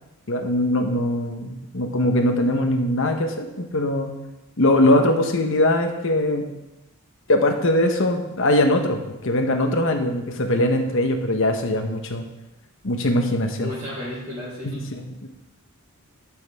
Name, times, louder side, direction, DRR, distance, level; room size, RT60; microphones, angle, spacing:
voice 1, 0.3-4.1 4.6-6.5 7.3-12.3 12.8-13.7 14.6-15.3, left 1 dB, 60° left, 4 dB, 1.1 m, -21 dB
voice 2, 13.6-14.8, left 1 dB, 30° right, -11 dB, 3.5 m, -33 dB
12.0 x 6.4 x 3.6 m, 0.98 s
head